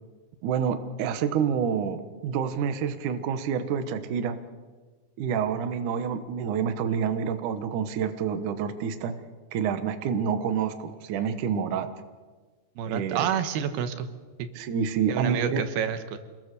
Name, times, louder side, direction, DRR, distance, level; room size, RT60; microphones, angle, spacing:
voice 1, 0.4-4.4 5.2-9.2 9.5-11.9 12.9-13.3 14.6-15.6, right 7 dB, 65° right, 9 dB, 2.3 m, -28 dB
voice 2, 12.8-14.1 14.4-14.5 15.1-16.2, right 8 dB, 80° right, 10 dB, 3.1 m, -28 dB
26.5 x 21.5 x 6.8 m, 1.4 s
omnidirectional pair, 4.5 m